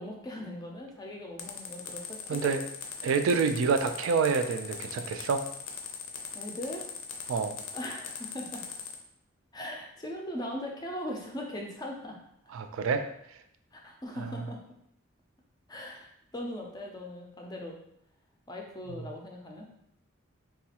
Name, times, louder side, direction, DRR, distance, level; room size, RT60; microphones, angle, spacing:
voice 1, 0.0-2.5 6.3-6.8 7.7-8.6 9.5-12.2 13.7-14.6 15.7-16.1 16.3-17.8 18.5-19.7, left 1 dB, 20° left, 0 dB, 0.4 m, -39 dB
sound 1, 1.4-8.9, left 7 dB, 75° left, 0.5 m, -40 dB
voice 2, 2.3-2.6 3.0-5.4 7.3-7.6 12.5-13.0, right 5 dB, 75° right, 7 dB, 0.3 m, -27 dB
4.0 x 2.3 x 2.8 m, 0.74 s
head